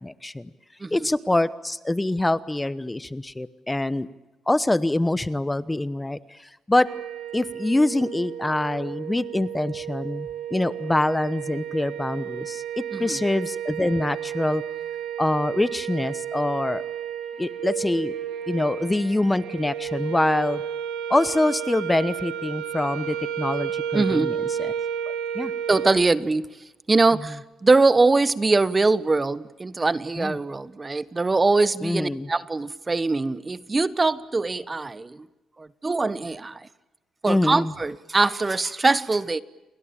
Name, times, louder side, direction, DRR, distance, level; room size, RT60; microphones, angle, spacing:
voice 1, 0.0-0.5 0.9-4.1 4.5-6.9 7.3-14.6 15.2-16.8 17.4-18.1 18.5-20.6 21.1-24.7 25.1-25.5 30.2-30.4 31.8-32.3 37.3-37.7, left 1 dB, 10° left, 16 dB, 1.0 m, -25 dB
sound 1, 6.8-25.9, right 9 dB, 80° right, 3.9 m, -32 dB
voice 2, 23.9-24.3 25.7-26.4 26.9-35.2 35.6-36.7 37.2-39.4, right 3 dB, 25° right, 16 dB, 1.1 m, -22 dB
29.5 x 22.0 x 8.7 m, 1.0 s
cardioid pair, 90°, 0 cm